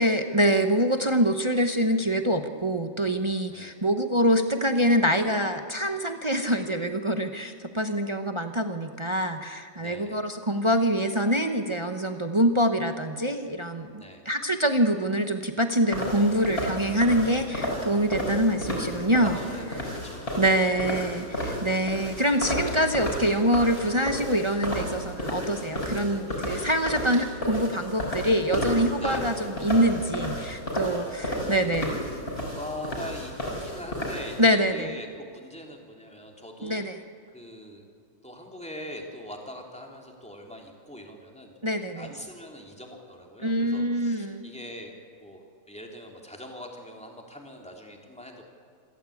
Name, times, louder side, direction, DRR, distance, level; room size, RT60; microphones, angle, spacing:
voice 1, 0.0-19.4 20.4-32.0 34.4-34.9 36.6-37.0 41.6-42.1 43.4-44.4, equal, 30° right, 6 dB, 0.5 m, -25 dB
voice 2, 9.8-10.3 14.0-14.3 19.1-20.5 26.3-26.8 29.0-29.3 30.8-31.1 32.5-36.8 37.3-37.8 38.2-41.5 41.9-48.3, left 1 dB, 5° left, 1 dB, 2.8 m, -42 dB
sound 1, 15.9-34.4, equal, 30° left, 5.6 m, -32 dB
27.0 x 14.0 x 8.5 m, 2.3 s
omnidirectional pair, 2.1 m